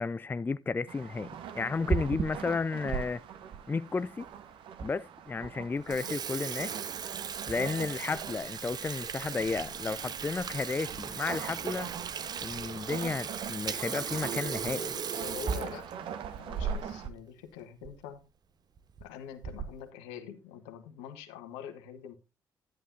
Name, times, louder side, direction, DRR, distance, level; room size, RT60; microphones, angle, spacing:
voice 1, 0.0-3.2 3.7-4.3 4.8-6.8 7.5-11.9 12.4-14.9, left 4 dB, 20° left, 0.4 m, -33 dB
sound 1, 0.9-17.1, right 8 dB, 60° right, 1.4 m, -44 dB
Water tap faucet / Sink (filling or washing), 1.6-3.0 3.5-3.6 4.3-4.4 4.8-4.9 5.3-5.5 5.8-17.2 17.5-17.6 17.8-18.0 18.8-19.0 19.4-19.9, right 6 dB, 45° right, 0.9 m, -36 dB
voice 2, 14.8-15.9 16.4-18.2 19.0-22.1, left 9 dB, 70° left, 1.5 m, -45 dB
11.0 x 10.5 x 2.7 m
figure-of-eight pair, 45°, 10 cm